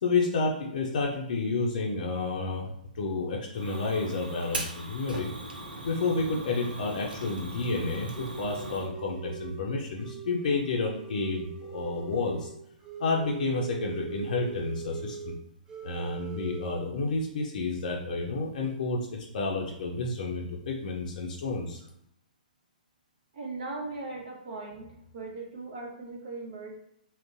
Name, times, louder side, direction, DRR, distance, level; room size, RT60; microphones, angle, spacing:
voice 1, 0.0-5.3 5.8-12.5 13.0-15.4 15.8-21.8, left 3 dB, 60° left, -1 dB, 0.5 m, -30 dB
Fire, 3.5-8.9, right 1 dB, 85° right, 0.6 m, -40 dB
sound 1, 8.1-9.7 10.0-15.4 15.7-16.8, right 6 dB, 15° right, 0.4 m, -41 dB
voice 2, 23.3-26.8, right 3 dB, 55° right, -2 dB, 0.8 m, -39 dB
3.7 x 2.1 x 2.5 m, 0.75 s
hypercardioid pair, 125°, 5 cm